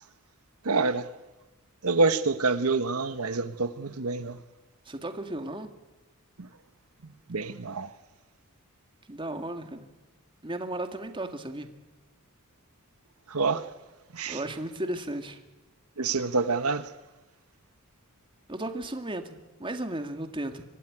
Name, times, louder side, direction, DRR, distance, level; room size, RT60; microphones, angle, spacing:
voice 1, 0.6-1.1 1.8-4.4 6.4-6.5 7.0-7.9 13.3-13.7 14.1-14.4 16.0-16.9, right 3 dB, 85° right, 1.2 m, -27 dB
voice 2, 4.9-5.7 9.1-9.9 10.4-11.7 14.3-15.4 18.5-20.6, right 1 dB, 25° right, 2.0 m, -35 dB
25.0 x 16.5 x 10.0 m
head